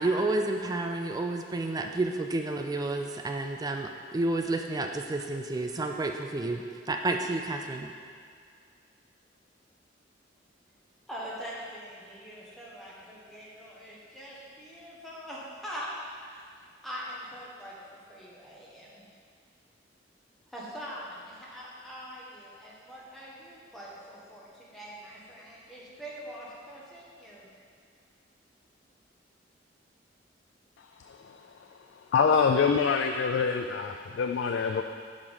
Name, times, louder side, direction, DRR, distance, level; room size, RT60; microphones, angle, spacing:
voice 1, 0.0-7.9, right 2 dB, 20° right, 4 dB, 0.3 m, -30 dB
voice 2, 11.1-15.9 16.3-16.5 16.8-18.9 20.5-27.4, equal, ahead, -7 dB, 1.3 m, -43 dB
voice 3, 32.1-34.8, left 5 dB, 70° left, 4 dB, 0.3 m, -25 dB
6.0 x 5.0 x 5.5 m, 2.1 s
head